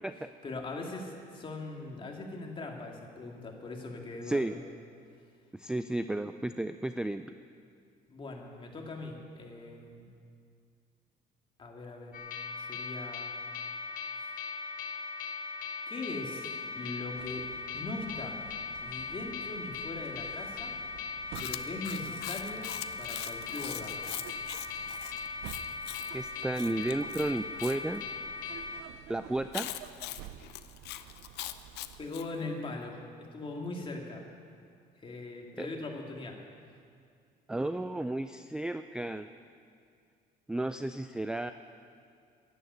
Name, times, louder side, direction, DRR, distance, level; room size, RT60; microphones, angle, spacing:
voice 1, 0.4-4.6 8.1-10.1 11.6-12.2 12.6-13.4 15.9-16.5 16.7-17.5 17.7-18.4 18.8-20.7 21.4-22.7 23.0-24.1 32.0-34.3 35.0-36.4, left 2 dB, 30° left, 1 dB, 2.2 m, -40 dB
voice 2, 5.5-7.4 26.1-28.1 29.1-29.7 35.6-35.7 37.5-39.3 40.5-41.5, right 1 dB, 5° right, 10 dB, 0.3 m, -33 dB
sound 1, 12.1-28.8, left 5 dB, 55° left, 1.4 m, -39 dB
sound 2, 17.2-32.1, right 11 dB, 85° right, 0.5 m, -51 dB
Chewing mastication, 21.3-27.8 29.5-32.3, left 14 dB, 80° left, 0.6 m, -42 dB
11.0 x 9.5 x 9.3 m, 2.3 s
cardioid pair, 110°, 17 cm